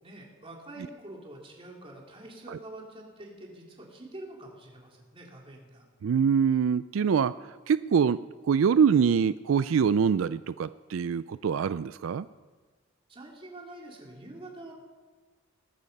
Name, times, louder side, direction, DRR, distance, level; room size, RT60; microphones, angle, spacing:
voice 1, 0.0-5.8 13.1-14.7, right 1 dB, 30° right, -1 dB, 3.2 m, -46 dB
voice 2, 6.0-12.3, right 6 dB, 85° right, 15 dB, 0.4 m, -25 dB
20.0 x 13.0 x 5.4 m, 1.4 s
head